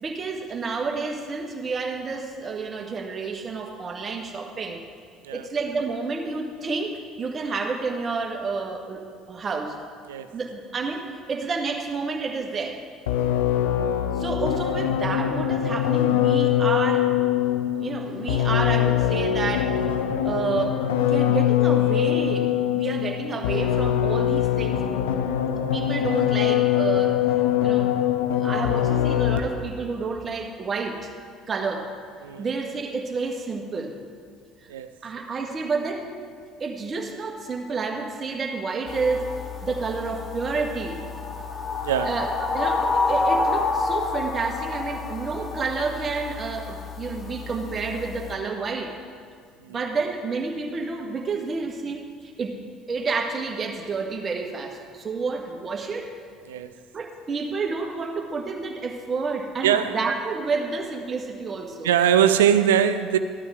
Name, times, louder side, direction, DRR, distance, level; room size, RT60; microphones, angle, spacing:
voice 1, 0.0-4.8 5.3-9.8 10.3-12.8 14.1-17.1 17.8-19.8 20.2-24.8 25.5-27.3 27.6-27.9 28.4-31.1 31.5-31.9 32.4-34.0 34.6-34.7 35.0-36.1 36.6-39.3 39.6-41.0 42.0-49.0 49.7-52.6 52.9-56.1 56.9-61.9, right 4 dB, 35° right, 3 dB, 1.5 m, -30 dB
sound 1, 13.1-29.7, left 11 dB, 75° left, 0.6 m, -23 dB
sound 2, 38.9-48.3, left 3 dB, 35° left, 1.6 m, -29 dB
voice 2, 59.6-60.0 61.8-63.2, right 9 dB, 75° right, 11 dB, 0.5 m, -21 dB
14.5 x 12.0 x 3.6 m, 2.1 s
figure-of-eight pair, 60°, 0 cm